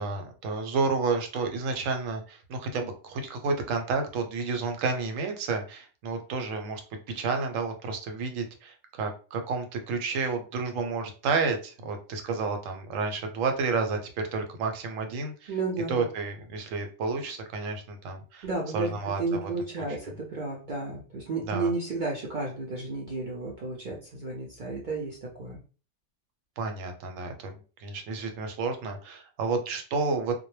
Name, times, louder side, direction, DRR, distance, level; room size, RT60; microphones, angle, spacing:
voice 1, 0.0-6.8 7.1-15.5 15.9-18.5 18.7-19.5 19.9-20.0 21.5-21.7 26.6-27.5 27.8-30.4, right 4 dB, 85° right, 5 dB, 1.0 m, -30 dB
voice 2, 15.5-16.1 18.4-18.9 19.2-25.6, right 3 dB, 55° right, -3 dB, 0.5 m, -32 dB
2.1 x 2.1 x 3.0 m, 0.36 s
omnidirectional pair, 1.3 m